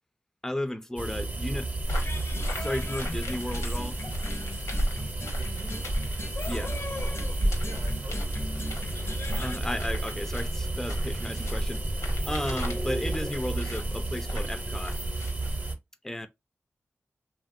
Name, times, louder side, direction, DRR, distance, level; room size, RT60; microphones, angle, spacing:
voice 1, 0.4-1.7 2.4-4.0 6.5-6.7 9.4-15.0 16.0-16.3, left 1 dB, 10° left, 0.4 m, -34 dB
sound 1, 1.0-15.7, right 2 dB, 30° right, 0.7 m, -32 dB
sound 2, 1.8-15.8, equal, 90° left, 1.0 m, -36 dB
sound 3, 1.9-9.6, left 2 dB, 60° left, 0.6 m, -40 dB
voice 2, 5.3-6.0 7.6-8.9, right 3 dB, 80° right, 0.6 m, -47 dB
3.0 x 2.3 x 2.5 m
cardioid pair, 45°, 5 cm